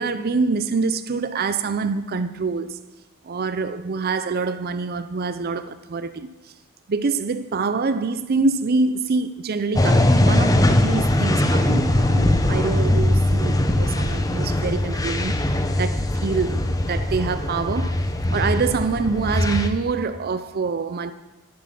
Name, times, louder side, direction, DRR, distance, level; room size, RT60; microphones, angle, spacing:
voice 1, 0.0-2.8 3.2-6.3 6.9-18.0 18.3-21.1, right 4 dB, 45° right, 0.5 m, -25 dB
sound 1, 9.7-19.7, left 1 dB, 15° left, 0.8 m, -20 dB
13.0 x 11.0 x 5.9 m
head